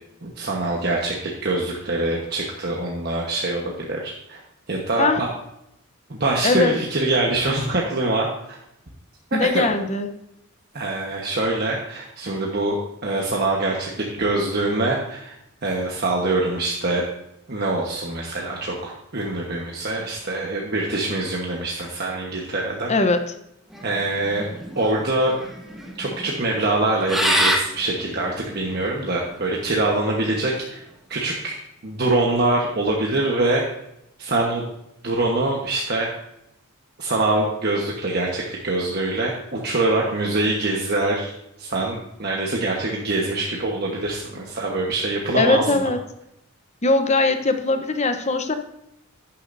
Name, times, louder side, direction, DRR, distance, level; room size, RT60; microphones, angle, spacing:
voice 1, 0.2-4.4 4.7-5.3 6.1-8.6 9.4-9.7 10.7-12.8 13.0-15.3 15.6-17.1 17.5-22.9 23.8-25.3 26.0-30.8 31.1-31.5 31.8-33.6 34.2-34.7 35.0-36.1 37.0-41.3 41.6-45.7, right 2 dB, 45° right, -2 dB, 1.2 m, -24 dB
voice 2, 6.4-6.7 9.3-10.1 22.9-23.2 45.3-46.0 46.8-48.5, left 3 dB, 30° left, 8 dB, 0.8 m, -20 dB
sound 1, 23.7-29.5, equal, ahead, 1.2 m, -26 dB
11.5 x 10.0 x 2.6 m, 0.83 s
head